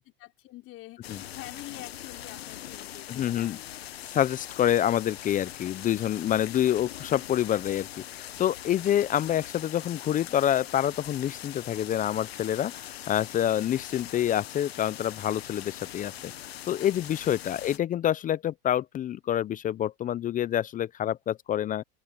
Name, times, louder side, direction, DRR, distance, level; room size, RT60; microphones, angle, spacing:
voice 1, 0.0-4.4 6.7-6.8, left 17 dB, 50° left, 5.3 m, -47 dB
sound 1, 1.0-17.8, left 12 dB, 90° left, 1.1 m, -42 dB
voice 2, 3.1-3.6 4.0-16.3 16.7-21.8, left 11 dB, 25° left, 0.6 m, -27 dB
open air
hypercardioid pair, 100°, 30 cm